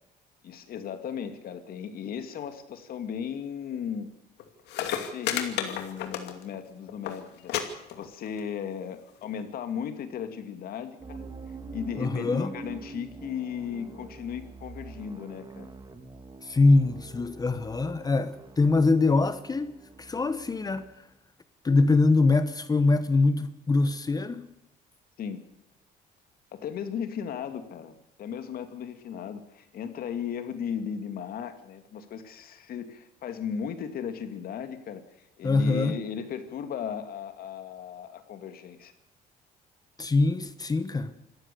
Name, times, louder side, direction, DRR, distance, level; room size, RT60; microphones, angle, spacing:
voice 1, 0.4-4.1 5.1-7.5 8.0-11.3 11.7-15.7 25.2-25.4 26.5-38.9, left 7 dB, 60° left, 2.5 m, -36 dB
Mechanic Sodaclub Pinguin, 4.4-4.5 4.7-6.6 6.9-7.2 7.5-7.6 7.9-8.4 9.2-9.3, left 10 dB, 85° left, 2.5 m, -31 dB
sound 1, 11.0-21.0, right 3 dB, 25° right, 2.4 m, -44 dB
voice 2, 12.0-12.5 16.4-19.7 20.0-20.8 21.6-24.5 35.4-36.0 40.0-41.1, left 3 dB, 20° left, 1.2 m, -23 dB
26.5 x 14.5 x 7.0 m
cardioid pair, 110°, 17 cm